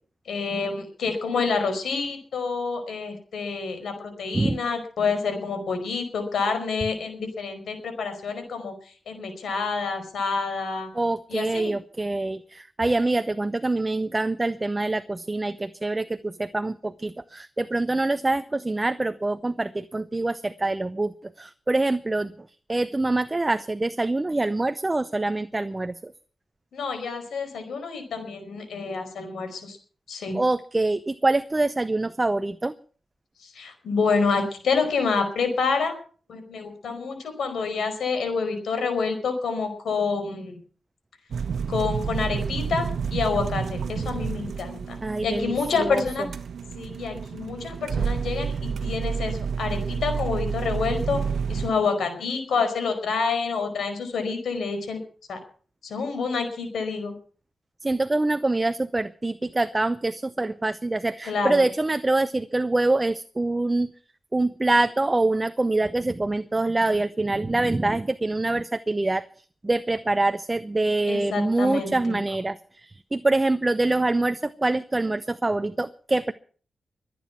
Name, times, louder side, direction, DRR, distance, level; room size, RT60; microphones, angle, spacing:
voice 1, 0.3-10.9 11.3-11.7 26.7-29.8 30.1-30.4 33.4-35.9 36.3-40.6 41.7-46.3 46.8-51.2 51.5-55.0 55.3-55.4 55.8-57.1 61.3-61.6 71.1-72.2, left 4 dB, 85° left, 7 dB, 5.2 m, -28 dB
voice 2, 10.9-22.3 22.7-26.1 30.3-32.7 45.0-46.0 57.8-63.9 64.3-69.2 69.6-76.3, right 2 dB, 20° right, 13 dB, 0.6 m, -25 dB
sound 1, 41.3-51.7, right 6 dB, 75° right, 1.2 m, -30 dB
23.5 x 9.3 x 5.9 m, 0.43 s
wide cardioid pair, 110°, 0 cm